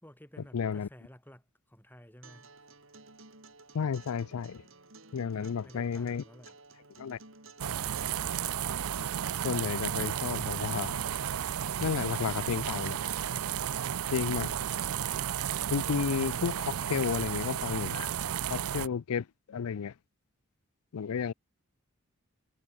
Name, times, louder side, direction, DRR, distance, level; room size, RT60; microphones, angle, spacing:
voice 1, 0.0-2.6 5.3-6.6, equal, 10° left, 4.1 m, -53 dB
voice 2, 0.5-0.9 3.7-4.6 5.1-6.2 7.0-7.2 9.4-11.0 11.8-13.1 14.1-14.5 15.7-18.1 18.5-19.9 20.9-21.3, left 6 dB, 80° left, 0.4 m, -32 dB
Acoustic guitar, 2.2-10.2, right 3 dB, 65° right, 6.0 m, -54 dB
sound 1, 7.6-18.9, right 9 dB, 80° right, 0.5 m, -33 dB
head